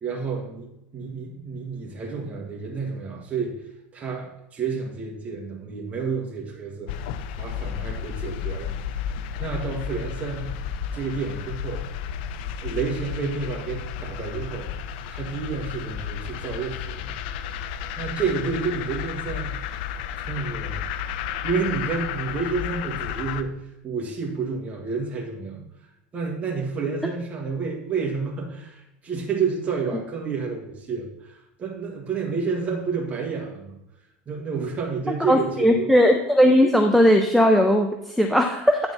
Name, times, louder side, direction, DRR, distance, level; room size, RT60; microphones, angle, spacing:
voice 1, 0.0-8.8 9.4-10.6 10.9-11.9 12.6-14.7 15.1-17.2 18.0-19.6 20.2-20.9 21.4-33.8 34.3-35.9, right 5 dB, 30° right, -1 dB, 1.6 m, -30 dB
sound 1, 6.9-23.4, left 8 dB, 75° left, 0.6 m, -32 dB
voice 2, 35.2-38.8, equal, ahead, 4 dB, 0.7 m, -18 dB
9.4 x 4.6 x 5.6 m, 0.87 s
supercardioid pair, 105°, 5 cm